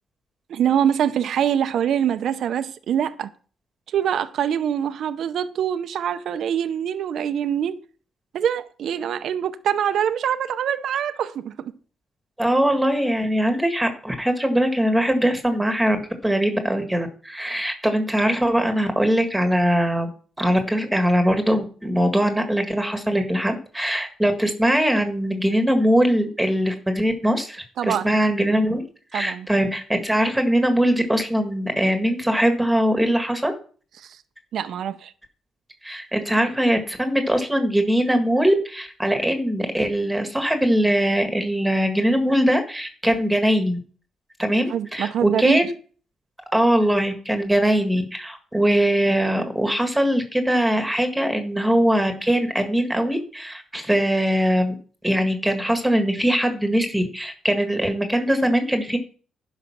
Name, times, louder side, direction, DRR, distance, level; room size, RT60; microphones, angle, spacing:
voice 1, 0.5-3.3 3.9-7.8 8.3-11.7 27.8-28.2 29.1-29.5 34.0-34.2 34.5-35.1 44.7-45.6, right 9 dB, 70° right, 0.7 m, -24 dB
voice 2, 12.4-16.0 16.2-20.1 20.4-28.9 29.1-33.5 35.8-43.8 44.4-45.7 46.5-54.7 55.0-59.0, equal, 5° right, 1.7 m, -21 dB
11.0 x 5.2 x 5.8 m
cardioid pair, 90°, 0 cm